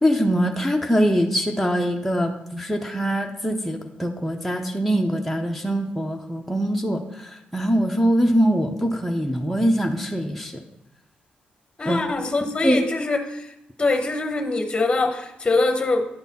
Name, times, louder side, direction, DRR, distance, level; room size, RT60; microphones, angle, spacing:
voice 1, 0.0-10.5 11.9-12.0 12.6-12.8, equal, ahead, 1 dB, 0.6 m, -23 dB
voice 2, 11.8-13.5 13.8-16.0, left 3 dB, 25° left, 6 dB, 0.9 m, -23 dB
10.5 x 4.0 x 4.1 m, 0.84 s
cardioid pair, 115°, 3 cm